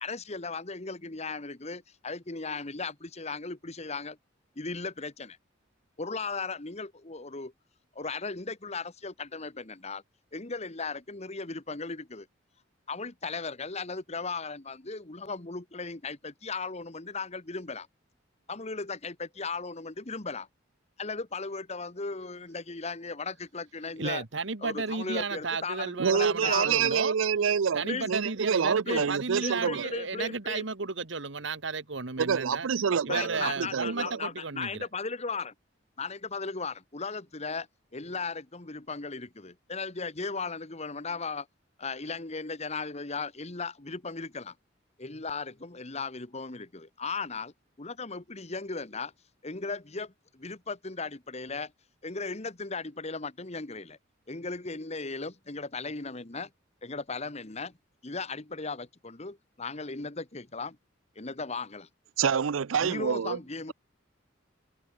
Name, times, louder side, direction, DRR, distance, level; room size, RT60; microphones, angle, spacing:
voice 1, 0.0-4.2 4.5-5.4 6.0-7.5 7.9-10.0 10.3-12.3 12.9-17.9 18.5-20.5 21.0-24.2 24.6-27.0 27.8-28.1 28.9-29.1 29.4-30.6 33.1-35.5 36.0-37.7 37.9-41.5 41.8-44.5 45.0-49.1 49.4-51.7 52.0-54.0 54.3-56.5 56.8-57.7 58.0-60.8 61.1-61.9 62.8-63.7, left 4 dB, 35° left, 1.4 m, -36 dB
voice 2, 24.0-27.1 27.7-32.7 33.0-34.9, right 4 dB, 65° right, 1.5 m, -33 dB
voice 3, 26.0-29.8 32.2-33.9 62.2-63.4, right 7 dB, 85° right, 0.5 m, -27 dB
head